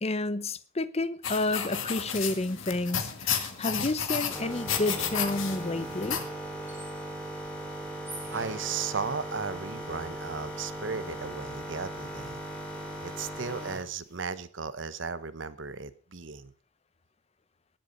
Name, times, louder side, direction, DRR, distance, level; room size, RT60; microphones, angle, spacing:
voice 1, 0.0-6.2, left 2 dB, 30° left, 0.7 m, -30 dB
sound 1, 1.2-6.2, left 7 dB, 75° left, 2.0 m, -32 dB
sound 2, 2.4-7.2 7.9-9.7, right 1 dB, 10° right, 3.7 m, -50 dB
sound 3, 4.3-13.9, right 1 dB, 5° left, 4.0 m, -38 dB
voice 2, 8.3-12.4 13.0-16.5, right 5 dB, 65° right, 1.0 m, -35 dB
19.0 x 8.0 x 5.4 m
head